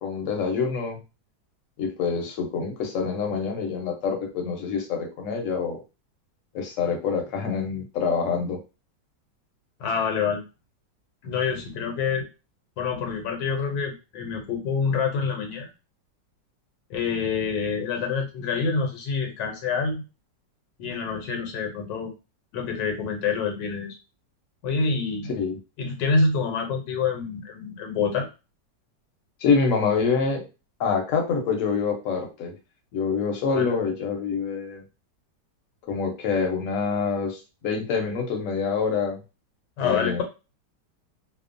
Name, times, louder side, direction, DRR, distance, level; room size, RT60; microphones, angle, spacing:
voice 1, 0.0-1.0 1.8-5.8 6.5-8.6 25.3-25.6 29.4-30.4 30.8-32.5 32.9-34.8 35.9-39.2 39.8-40.2, left 5 dB, 60° left, 2 dB, 0.9 m, -26 dB
voice 2, 9.8-10.4 11.2-12.3 12.8-15.7 16.9-20.0 20.8-22.1 22.5-23.9 24.6-25.3 25.8-28.3 33.5-33.7 39.8-40.2, left 5 dB, 80° left, 3 dB, 1.2 m, -26 dB
2.9 x 2.0 x 2.5 m, 0.29 s
omnidirectional pair, 1.9 m